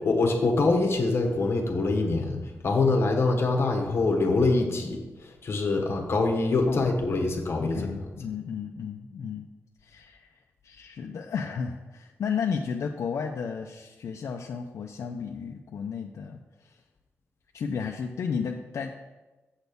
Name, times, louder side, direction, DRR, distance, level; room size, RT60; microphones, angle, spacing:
voice 1, 0.0-8.1, left 3 dB, 55° left, 2 dB, 1.3 m, -25 dB
voice 2, 6.7-7.0 7.6-9.5 9.8-10.4 10.6-16.8 17.5-18.9, left 6 dB, 80° left, 2 dB, 0.5 m, -33 dB
7.9 x 4.2 x 6.7 m, 1.1 s
wide cardioid pair, 135°, 5 cm